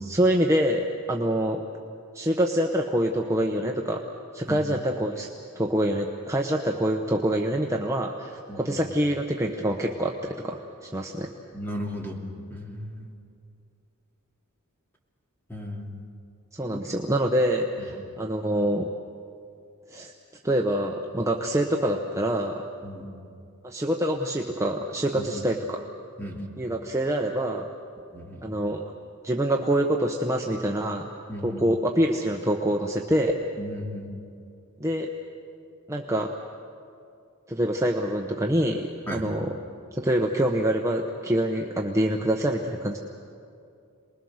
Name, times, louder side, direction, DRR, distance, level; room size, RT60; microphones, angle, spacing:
voice 1, 0.0-1.6 2.1-4.0 4.3-5.3 5.6-11.3 16.5-18.9 19.9-20.1 20.4-22.6 23.6-25.9 26.6-27.7 28.4-28.8 29.2-31.1 31.4-33.4 34.8-35.1 35.9-36.3 37.5-39.5 39.9-43.0, right 1 dB, 15° right, 1 dB, 0.9 m, -25 dB
voice 2, 8.5-8.8 11.5-12.2 12.5-13.1 15.5-16.0 16.7-16.8 17.8-17.9 22.8-23.1 25.2-25.3 26.2-26.5 28.1-28.5 31.3-31.6 33.6-34.2 39.1-39.3, equal, 10° left, 0 dB, 2.6 m, -35 dB
28.0 x 21.0 x 6.5 m, 2.5 s
head